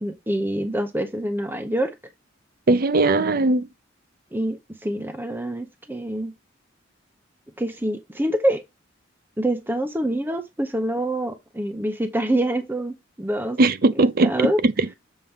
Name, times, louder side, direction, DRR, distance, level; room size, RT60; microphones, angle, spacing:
voice 1, 0.0-1.9 4.3-6.3 7.6-8.6 9.4-13.6 13.9-14.6, right 1 dB, 10° right, 0.7 m, -26 dB
voice 2, 2.7-3.7 13.6-14.9, right 2 dB, 50° right, 0.6 m, -19 dB
7.3 x 4.6 x 3.5 m
head